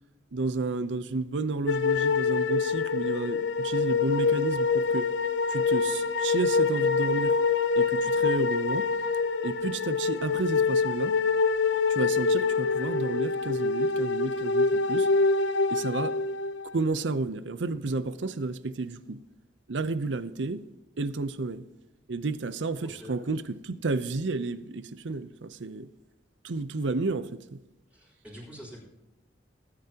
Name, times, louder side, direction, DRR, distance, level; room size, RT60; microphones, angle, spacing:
voice 1, 0.3-5.1 5.5-7.4 7.8-8.9 9.4-11.2 11.9-15.1 15.7-16.2 16.7-19.2 19.7-20.6 21.0-21.7 22.1-25.9 26.4-27.6, right 3 dB, 85° right, 0.7 m, -31 dB
sound 1, 1.7-16.8, left 4 dB, 80° left, 0.6 m, -25 dB
voice 2, 22.8-23.2 27.9-28.8, equal, 10° right, 3.9 m, -45 dB
20.5 x 9.8 x 2.9 m
head